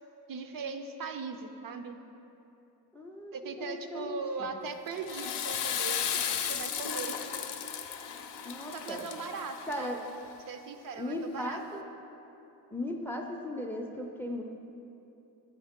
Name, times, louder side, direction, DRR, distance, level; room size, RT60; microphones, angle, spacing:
voice 1, 0.3-2.0 3.3-6.2 6.5-7.2 8.7-9.9 10.5-11.6, right 4 dB, 55° right, 7 dB, 0.5 m, -39 dB
voice 2, 2.9-4.5 8.4-9.1 9.7-10.0 11.0-11.9 12.7-14.4, left 1 dB, 5° left, 2 dB, 0.4 m, -37 dB
Water / Toilet flush, 4.9-10.1, left 8 dB, 75° left, 0.6 m, -35 dB
8.0 x 4.7 x 3.6 m, 2.9 s
cardioid pair, 85°, 42 cm